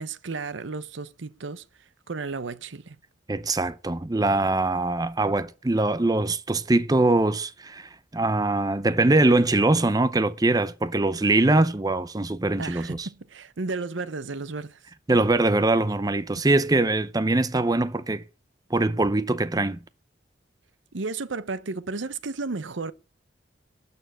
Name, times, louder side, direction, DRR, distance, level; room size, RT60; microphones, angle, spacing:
voice 1, 0.0-1.6 2.1-3.0 12.6-14.8 16.4-16.5 20.9-22.9, right 3 dB, 85° right, 0.8 m, -33 dB
voice 2, 3.3-13.1 15.1-18.2 18.7-19.8, right 2 dB, 20° right, 0.6 m, -22 dB
12.5 x 6.8 x 8.0 m
head